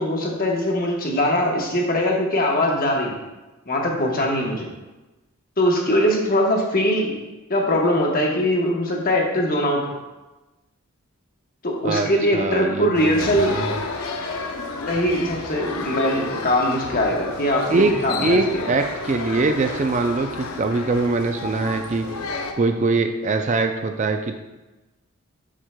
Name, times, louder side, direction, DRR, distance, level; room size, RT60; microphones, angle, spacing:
voice 1, 0.0-3.2 3.7-4.7 5.6-7.1 7.5-9.8 11.6-13.6 14.9-18.7, left 1 dB, 40° left, -1 dB, 1.1 m, -21 dB
voice 2, 12.3-13.8 17.7-17.9 18.2-22.1 22.6-24.3, right 3 dB, 35° right, 6 dB, 0.3 m, -22 dB
sound 1, 12.9-22.5, left 3 dB, 80° left, 0.6 m, -31 dB
7.3 x 6.2 x 2.2 m, 1.1 s
head